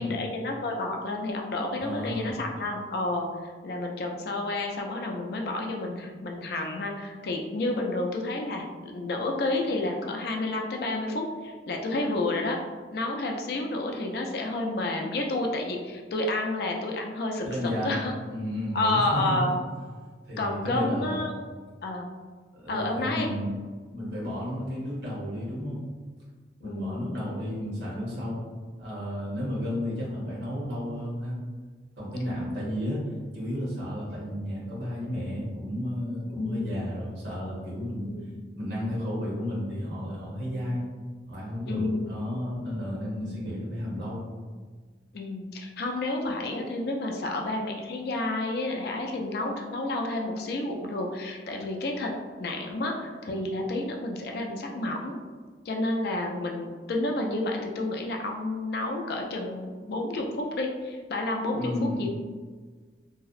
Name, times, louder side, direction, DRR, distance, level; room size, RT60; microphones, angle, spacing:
voice 1, 0.0-12.6 12.9-18.2 18.7-19.5 20.4-21.4 21.8-22.1 22.7-23.3 26.6-27.2 36.3-36.8 38.0-38.3 40.5-40.7 41.7-42.2 43.2-43.5 45.1-52.1 52.4-55.2 55.7-62.1, left 2 dB, 60° left, 1 dB, 0.3 m, -30 dB
voice 2, 1.8-2.4 17.4-19.5 20.3-21.2 22.5-23.5 23.9-25.8 26.6-28.4 28.8-31.4 32.0-33.1 33.3-38.1 38.6-40.8 41.3-44.3 61.5-62.1, left 1 dB, 70° right, -6 dB, 0.9 m, -32 dB
2.6 x 2.0 x 2.4 m, 1.5 s
head